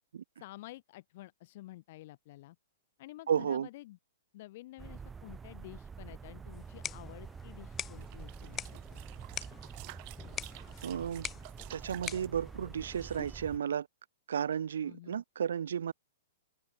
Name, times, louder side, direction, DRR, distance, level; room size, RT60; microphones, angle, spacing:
voice 1, 0.4-2.6 3.0-4.0 4.3-9.0 14.8-15.2, left 17 dB, 45° left, 3.5 m, -50 dB
voice 2, 3.3-3.7 10.8-11.3 11.7-13.9 14.3-15.9, right 8 dB, 65° right, 1.5 m, -33 dB
sound 1, 4.8-13.6, right 5 dB, 15° right, 4.5 m, -47 dB
sound 2, 6.5-13.5, left 9 dB, 20° left, 1.5 m, -45 dB
sound 3, 7.9-12.3, right 31 dB, 40° right, 6.9 m, -51 dB
figure-of-eight pair, 110°, 0 cm